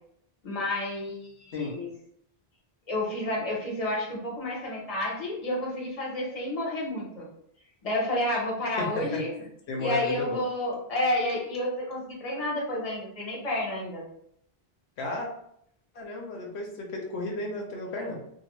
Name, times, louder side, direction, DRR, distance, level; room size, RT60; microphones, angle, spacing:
voice 1, 0.4-1.9 2.9-7.3 7.8-9.3 9.8-14.0, left 1 dB, 35° left, -4 dB, 0.9 m, -30 dB
voice 2, 8.8-9.2 9.7-10.4 15.0-15.3 15.9-18.2, left 2 dB, 85° left, 0 dB, 0.9 m, -33 dB
2.7 x 2.1 x 3.0 m, 0.71 s
omnidirectional pair, 1.1 m